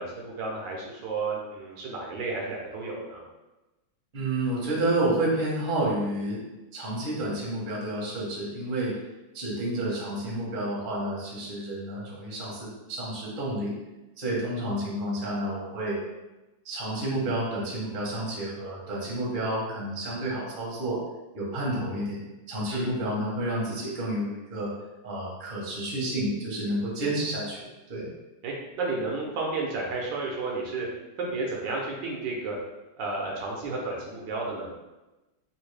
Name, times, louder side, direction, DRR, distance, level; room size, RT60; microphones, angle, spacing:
voice 1, 0.0-3.2 22.7-22.9 28.4-30.9 31.2-32.5 33.0-34.7, right 3 dB, 75° right, -2 dB, 1.3 m, -32 dB
voice 2, 4.1-6.4 6.7-8.9 9.3-13.7 14.2-16.0 16.6-21.0 21.3-22.2 22.5-24.7 25.0-28.1, right 1 dB, 35° right, -5 dB, 0.8 m, -30 dB
3.5 x 2.7 x 3.2 m, 1.1 s
omnidirectional pair, 2.1 m